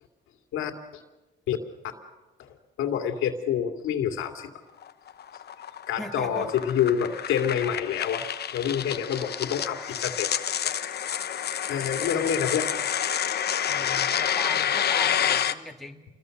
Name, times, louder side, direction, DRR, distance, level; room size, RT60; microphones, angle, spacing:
voice 1, 2.8-4.5 5.9-8.2 8.5-10.3 10.6-10.7 11.7-12.7 13.2-13.4, left 8 dB, 90° left, 5 dB, 2.6 m, -27 dB
sound 1, 4.8-15.5, left 9 dB, 55° left, 1.0 m, -28 dB
voice 2, 6.0-6.5 13.6-16.0, left 1 dB, ahead, 1 dB, 2.5 m, -39 dB
28.0 x 21.5 x 6.7 m, 1.1 s
cardioid pair, 90°, 20 cm